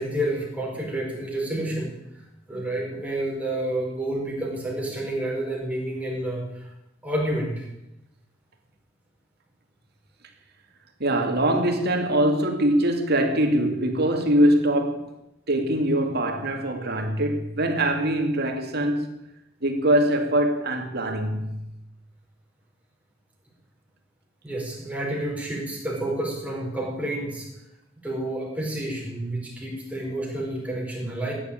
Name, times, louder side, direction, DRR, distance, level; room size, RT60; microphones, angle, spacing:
voice 1, 0.0-1.9 2.1-6.7 7.0-7.7 24.4-27.5 28.0-31.3, right 1 dB, 10° right, 4.9 m, -29 dB
voice 2, 11.0-15.1 15.5-19.2 19.6-21.7, right 1 dB, 55° right, 2.4 m, -23 dB
15.0 x 10.0 x 8.9 m
head